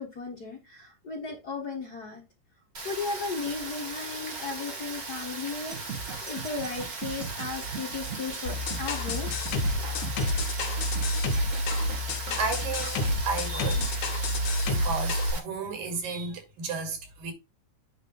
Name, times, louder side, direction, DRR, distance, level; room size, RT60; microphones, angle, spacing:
voice 1, 0.0-2.2 2.8-9.3, left 4 dB, 85° left, 0.8 m, -35 dB
Rain, 2.7-15.4, right 3 dB, 30° right, 1.9 m, -38 dB
sound 1, 5.7-13.2, right 5 dB, 50° right, 1.0 m, -40 dB
sound 2, 8.5-15.3, left 1 dB, 65° left, 2.7 m, -29 dB
voice 2, 12.4-13.9 14.2-14.3 14.7-17.3, right 4 dB, 75° right, 4.0 m, -33 dB
9.0 x 3.4 x 5.4 m
omnidirectional pair, 3.9 m